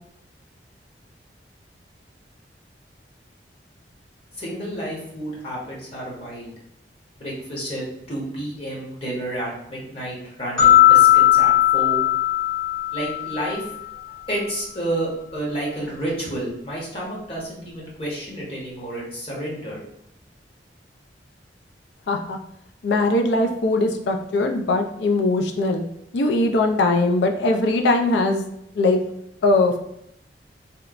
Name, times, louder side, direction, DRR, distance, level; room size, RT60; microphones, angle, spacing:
voice 1, 4.4-6.5 7.2-12.0 12.9-13.6 14.3-19.8, right 1 dB, 30° left, -5 dB, 0.9 m, -30 dB
sound 1, 10.6-13.7, left 13 dB, 5° left, 0.7 m, -17 dB
voice 2, 22.1-22.4 22.8-25.8 26.1-28.5 28.7-29.0 29.4-29.8, left 2 dB, 75° left, 4 dB, 0.4 m, -20 dB
2.8 x 2.1 x 2.4 m, 0.76 s
head